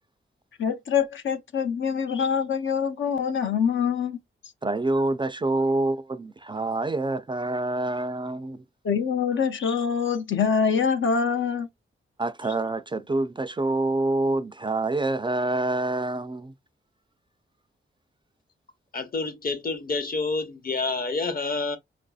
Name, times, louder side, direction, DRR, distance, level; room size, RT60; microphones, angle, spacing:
voice 1, 0.6-4.2 8.8-11.7, left 6 dB, 70° left, 0.6 m, -25 dB
voice 2, 4.6-8.6 12.2-16.5, right 2 dB, 25° right, 0.3 m, -26 dB
voice 3, 18.9-21.8, left 3 dB, 45° left, 0.8 m, -28 dB
4.5 x 2.6 x 2.3 m
cardioid pair, 85°, 20 cm